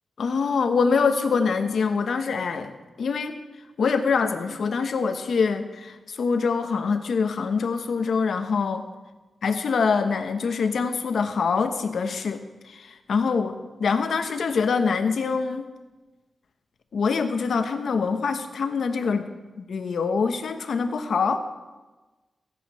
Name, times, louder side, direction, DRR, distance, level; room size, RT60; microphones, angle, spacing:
voice 1, 0.2-3.4 3.8-8.9 9.4-15.6 16.9-19.3 19.6-21.6, left 5 dB, 75° left, 8 dB, 1.0 m, -25 dB
15.5 x 9.1 x 5.6 m, 1.2 s
wide cardioid pair, 135°, 0 cm